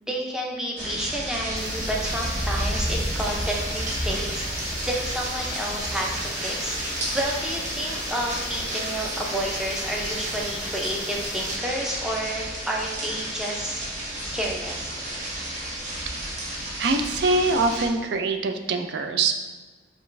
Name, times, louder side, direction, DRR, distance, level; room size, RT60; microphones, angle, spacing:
voice 1, 0.0-4.5 4.8-6.8 7.1-13.8 14.3-15.0, right 1 dB, 5° right, -2 dB, 0.5 m, -30 dB
sound 1, 0.8-17.9, right 1 dB, 40° right, 0.9 m, -31 dB
sound 2, 1.6-11.6, left 3 dB, 65° left, 0.4 m, -40 dB
voice 2, 16.8-19.5, right 3 dB, 65° right, 6 dB, 0.4 m, -23 dB
5.2 x 2.5 x 3.2 m, 1.4 s
head